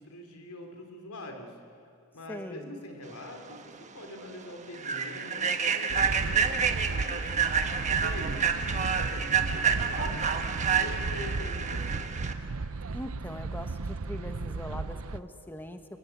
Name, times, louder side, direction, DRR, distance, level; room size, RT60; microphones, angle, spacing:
voice 1, 0.0-1.5 2.1-7.3 7.9-8.4 8.7-12.1, left 1 dB, 85° left, 4 dB, 3.8 m, -44 dB
voice 2, 2.3-2.7 12.9-15.8, left 1 dB, 10° left, 6 dB, 1.1 m, -41 dB
Human voice / Train, 3.5-3.6 4.0-4.2 4.7-12.3, right 6 dB, 35° right, 1.4 m, -29 dB
sound 1, 5.9-15.2, right 3 dB, 70° right, 0.7 m, -35 dB
27.5 x 23.0 x 9.5 m, 2.5 s
head